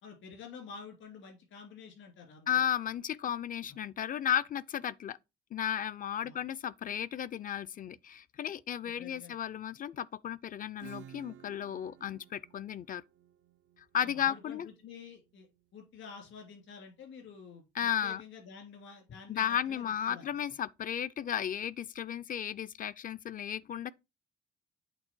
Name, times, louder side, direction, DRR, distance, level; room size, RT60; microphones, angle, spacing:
voice 1, 0.0-2.6 6.2-6.4 8.8-9.3 14.0-15.5 15.7-20.3, left 5 dB, 75° left, 2.8 m, -49 dB
voice 2, 2.5-5.2 5.5-13.0 13.9-14.7 17.8-18.2 19.3-23.9, left 9 dB, 45° left, 0.4 m, -34 dB
Acoustic guitar / Strum, 10.8-16.2, right 11 dB, 70° right, 0.5 m, -55 dB
8.2 x 3.3 x 4.5 m
cardioid pair, 90°, 20 cm